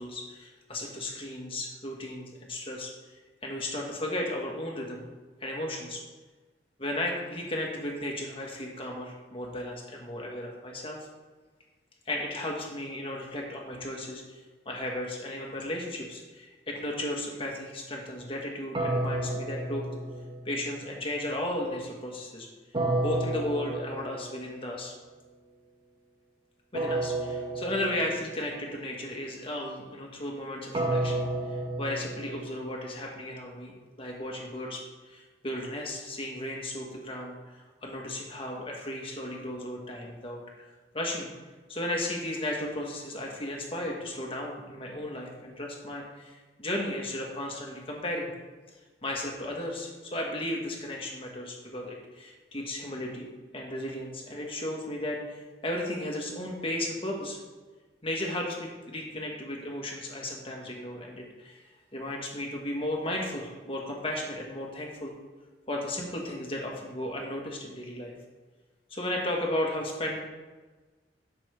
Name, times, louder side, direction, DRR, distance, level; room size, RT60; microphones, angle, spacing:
voice 1, 0.0-5.0 5.4-6.0 6.8-11.0 12.0-14.4 14.6-19.9 20.4-22.5 23.0-24.9 26.7-34.8 35.1-40.4 40.9-41.3 41.7-48.3 49.0-53.3 53.5-57.4 58.0-61.6 61.9-65.1 65.7-68.1 68.9-70.2, left 1 dB, 30° left, -1 dB, 1.7 m, -35 dB
sound 1, 18.7-20.8 22.7-24.6 26.7-28.6 30.7-32.9, right 2 dB, 30° right, 1.1 m, -31 dB
12.0 x 6.1 x 3.5 m, 1.3 s
head